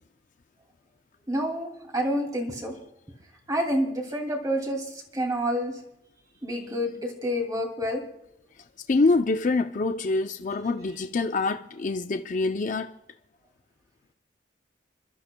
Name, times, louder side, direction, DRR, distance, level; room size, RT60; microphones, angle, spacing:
voice 1, 1.3-2.8 3.5-5.8 6.4-8.1, equal, 20° right, 2.5 m, -28 dB
voice 2, 8.9-12.9, left 3 dB, 45° left, 0.5 m, -25 dB
28.0 x 12.5 x 2.2 m
head